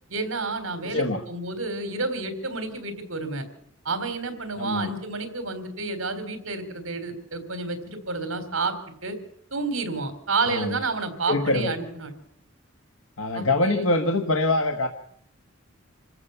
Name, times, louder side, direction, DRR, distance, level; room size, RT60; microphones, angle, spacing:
voice 1, 0.1-3.4 3.9-8.7 9.0-9.2 9.5-12.1 13.3-13.9, right 3 dB, 80° right, 9 dB, 3.5 m, -30 dB
voice 2, 0.8-1.2 4.5-4.9 10.4-10.7 11.3-11.7 13.2-14.9, left 2 dB, 85° left, 4 dB, 1.4 m, -24 dB
26.5 x 15.0 x 6.9 m, 0.68 s
head